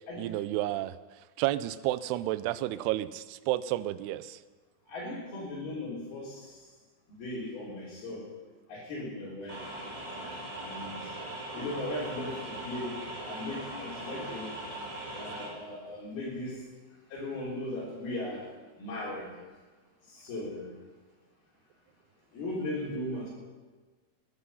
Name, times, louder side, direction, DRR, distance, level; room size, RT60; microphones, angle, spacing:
voice 1, 0.2-1.0 1.4-4.4, right 15 dB, 80° right, 15 dB, 2.4 m, -31 dB
voice 2, 4.9-6.6 7.2-8.3 8.7-9.6 10.6-11.1 11.5-13.0 13.3-14.6 15.1-16.6 17.1-18.5 18.8-19.3 20.0-20.7 22.3-23.3, left 1 dB, 60° left, -7 dB, 5.5 m, -37 dB
sound 1, 9.5-15.5, right 1 dB, 15° right, 4.0 m, -40 dB
21.5 x 12.0 x 5.7 m, 1.3 s
omnidirectional pair, 5.0 m